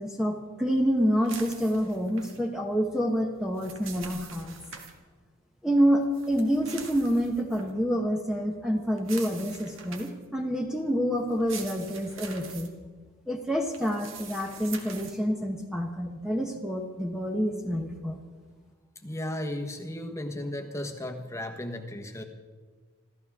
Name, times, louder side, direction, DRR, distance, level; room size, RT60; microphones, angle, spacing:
voice 1, 0.0-4.6 5.6-12.7 13.3-18.2, equal, 5° right, 1 dB, 1.1 m, -27 dB
sound 1, 1.2-2.4 3.3-4.9 6.1-7.7 9.0-10.2 11.3-12.7 13.7-15.2, right 6 dB, 60° right, 2.0 m, -44 dB
voice 2, 19.0-22.2, left 1 dB, 15° left, 3 dB, 1.3 m, -35 dB
27.0 x 14.0 x 3.6 m, 1.4 s
head